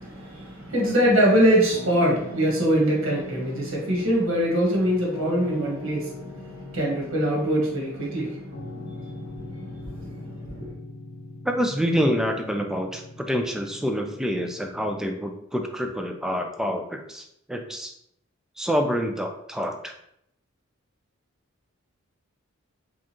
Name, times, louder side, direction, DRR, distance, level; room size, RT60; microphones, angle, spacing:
voice 1, 0.0-10.7, equal, 70° right, -3 dB, 1.4 m, -24 dB
Piano, 1.7-15.1, left 2 dB, 70° left, 0.7 m, -41 dB
voice 2, 11.5-17.9 18.6-19.9, equal, 5° right, 4 dB, 0.3 m, -27 dB
4.7 x 2.4 x 2.9 m, 0.76 s
head